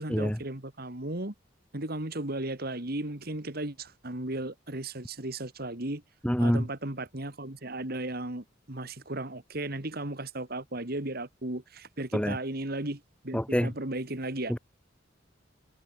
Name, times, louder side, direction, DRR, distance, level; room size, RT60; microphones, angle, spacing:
voice 1, 0.0-1.3 1.7-6.0 6.4-14.5, right 1 dB, 50° right, 2.7 m, -35 dB
voice 2, 6.2-6.7 12.1-12.4 13.3-13.7 14.5-14.6, equal, 5° left, 1.5 m, -26 dB
head